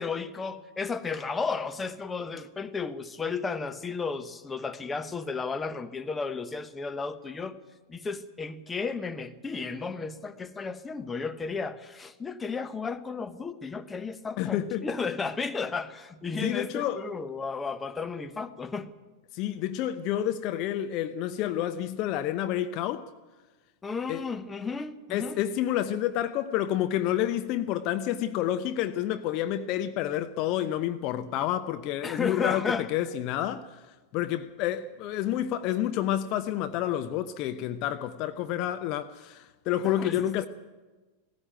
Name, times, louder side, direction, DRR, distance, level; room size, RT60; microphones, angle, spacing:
voice 1, 0.0-7.6 7.9-18.9 23.8-25.4 32.0-32.9 39.8-40.5, left 4 dB, 15° left, 1.1 m, -33 dB
voice 2, 14.4-14.9 16.4-17.0 19.3-23.0 24.1-24.2 25.1-33.8 34.1-40.5, left 12 dB, 40° left, 0.8 m, -29 dB
18.5 x 15.5 x 9.2 m
figure-of-eight pair, 90°, 0 cm